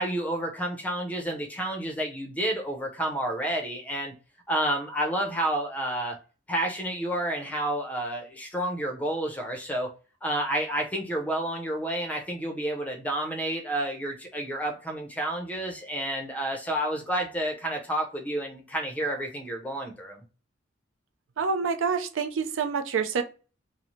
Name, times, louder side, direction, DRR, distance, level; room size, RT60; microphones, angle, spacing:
voice 1, 0.0-4.1 4.5-6.2 6.5-9.9 10.2-20.2, right 1 dB, 10° left, 2 dB, 0.5 m, -30 dB
voice 2, 21.4-23.2, right 5 dB, 75° right, 7 dB, 0.4 m, -27 dB
2.6 x 2.0 x 3.0 m, 0.34 s
head